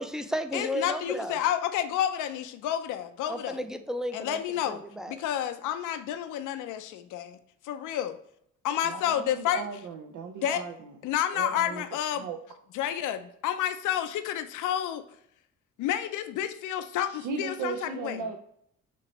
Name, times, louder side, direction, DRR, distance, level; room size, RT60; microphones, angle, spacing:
voice 1, 0.0-1.4 3.3-4.4 4.7-5.2, equal, ahead, 8 dB, 0.4 m, -33 dB
voice 2, 0.5-3.6 4.1-7.3 7.7-8.2 8.6-9.7 10.4-10.6 11.0-12.3 12.7-15.1 15.8-18.2, left 10 dB, 85° left, 9 dB, 0.5 m, -30 dB
voice 3, 8.8-10.7 11.3-11.8 12.2-12.4 17.1-18.4, right 5 dB, 80° right, 3 dB, 0.6 m, -36 dB
6.0 x 2.9 x 3.0 m, 0.69 s
cardioid pair, 90°, 30 cm